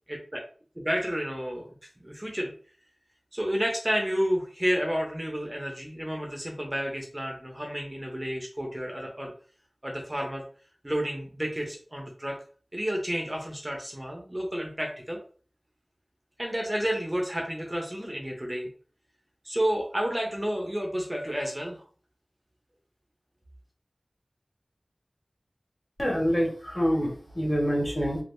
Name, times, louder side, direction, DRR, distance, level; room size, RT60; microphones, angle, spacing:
voice 1, 0.1-0.4 0.8-1.7 2.0-2.5 3.3-9.3 9.8-10.4 10.8-12.4 12.7-15.2 16.4-18.7 19.4-21.8, equal, 20° right, 0 dB, 0.7 m, -30 dB
voice 2, 26.0-28.2, equal, 35° left, -3 dB, 1.5 m, -26 dB
3.5 x 2.5 x 2.6 m, 0.42 s
wide cardioid pair, 60°, 0 cm